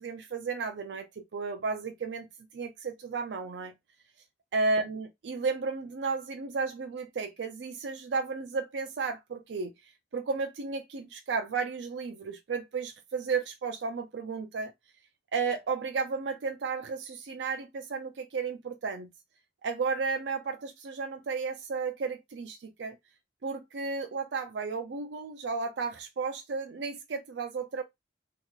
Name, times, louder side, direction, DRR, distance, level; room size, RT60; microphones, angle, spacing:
voice 1, 0.0-2.3 2.5-3.7 4.5-9.7 10.1-14.7 15.3-19.1 19.6-23.0 23.4-27.8, right 4 dB, 85° right, 0.4 m, -33 dB
3.6 x 2.9 x 2.3 m
head